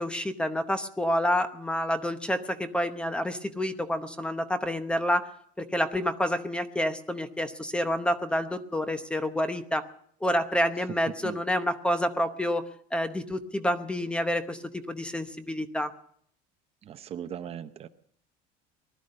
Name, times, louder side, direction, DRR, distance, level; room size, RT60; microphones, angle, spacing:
voice 1, 0.0-5.3 5.6-9.8 10.2-12.7 12.9-15.9, equal, 5° left, 10 dB, 0.8 m, -28 dB
voice 2, 16.8-17.9, right 9 dB, 35° right, 10 dB, 0.7 m, -38 dB
20.0 x 12.5 x 5.4 m, 0.65 s
cardioid pair, 160°, 18 cm